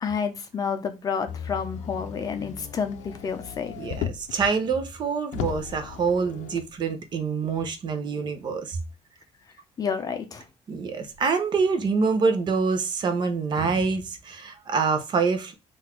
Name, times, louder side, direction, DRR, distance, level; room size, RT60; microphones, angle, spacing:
voice 1, 0.0-3.7 9.8-10.4, left 6 dB, 30° left, 0.6 m, -30 dB
Motor vehicle (road), 1.3-4.4 4.9-5.0 5.3-6.7 7.6-7.7, left 8 dB, 80° left, 0.5 m, -36 dB
voice 2, 3.8-8.8 10.7-15.5, right 5 dB, 40° right, 0.7 m, -26 dB
3.9 x 2.5 x 4.3 m
cardioid pair, 170°, 12 cm